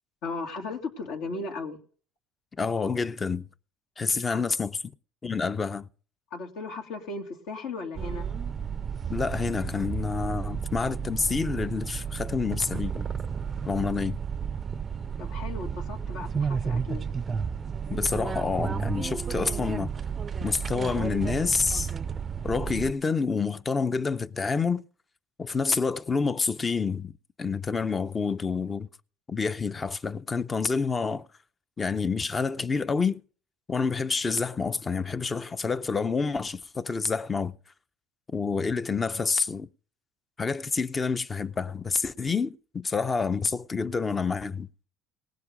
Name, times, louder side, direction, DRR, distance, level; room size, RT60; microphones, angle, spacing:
voice 1, 0.2-1.8 4.1-4.4 6.3-8.3 13.6-13.9 15.2-17.1, left 3 dB, 70° left, 2.6 m, -36 dB
voice 2, 2.6-3.5 4.0-4.7 5.2-5.9 9.1-13.1 13.7-14.2 17.9-19.9 20.4-21.9 22.4-24.8 25.4-27.1 27.4-28.9 29.3-31.3 31.8-33.2 33.7-37.6 38.3-39.7 40.4-44.7, left 5 dB, 20° left, 0.6 m, -28 dB
sound 1, 8.0-22.9, right 6 dB, 25° right, 0.5 m, -32 dB
18.5 x 7.6 x 5.2 m
cardioid pair, 115°, 0 cm